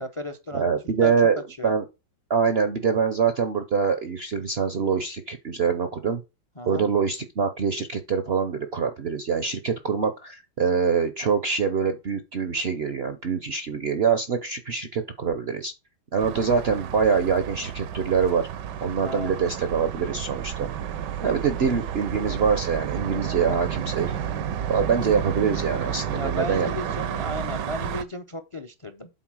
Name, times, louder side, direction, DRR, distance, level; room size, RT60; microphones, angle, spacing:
voice 1, 0.0-0.7 1.0-1.1 1.6-1.7 6.6-6.9 19.0-19.3 26.1-29.1, left 1 dB, 35° left, 0.4 m, -34 dB
voice 2, 0.5-1.9 2.3-6.2 6.7-15.7 16.1-18.5 18.8-20.7 21.2-24.2 24.7-26.9, right 6 dB, 55° right, 0.7 m, -24 dB
sound 1, 16.2-28.0, right 9 dB, 75° right, 1.3 m, -31 dB
8.0 x 4.1 x 6.2 m
omnidirectional pair, 1.9 m